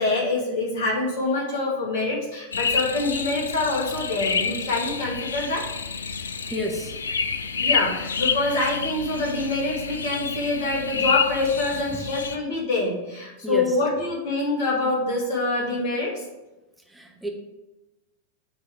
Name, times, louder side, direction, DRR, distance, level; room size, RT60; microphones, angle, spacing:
voice 1, 0.0-5.7 7.6-16.1, left 2 dB, 55° left, -3 dB, 2.3 m, -25 dB
sound 1, 2.5-12.4, left 5 dB, 70° left, 0.4 m, -28 dB
voice 2, 6.5-6.9 13.4-13.7 16.9-17.3, equal, 5° right, 1 dB, 1.2 m, -29 dB
7.9 x 4.0 x 5.1 m, 1.0 s
figure-of-eight pair, 90°, 0 cm